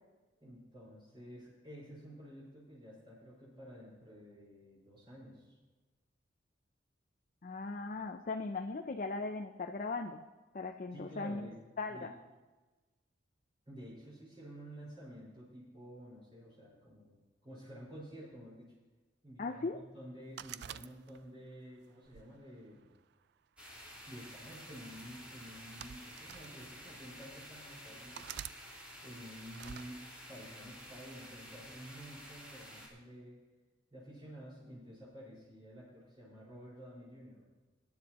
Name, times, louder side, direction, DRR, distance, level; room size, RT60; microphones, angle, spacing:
voice 1, 0.4-5.5 10.9-11.6 11.9-12.1 13.7-17.2 17.4-18.7 19.2-22.9 23.7-28.3 29.0-30.0 30.3-33.4 33.9-37.4, equal, 30° right, -9 dB, 4.9 m, -51 dB
voice 2, 7.4-10.2 10.5-11.5 11.8-12.1 19.4-19.8, left 3 dB, 45° left, 4 dB, 0.5 m, -38 dB
sound 1, 20.4-21.4 22.1-23.2 24.2-24.5 25.5-26.5 27.2-27.3 28.1-28.6 29.5-29.9, right 10 dB, 60° right, 0.3 m, -47 dB
sound 2, 23.6-32.9, equal, 5° right, 3.2 m, -51 dB
21.0 x 10.5 x 3.0 m, 1.2 s
head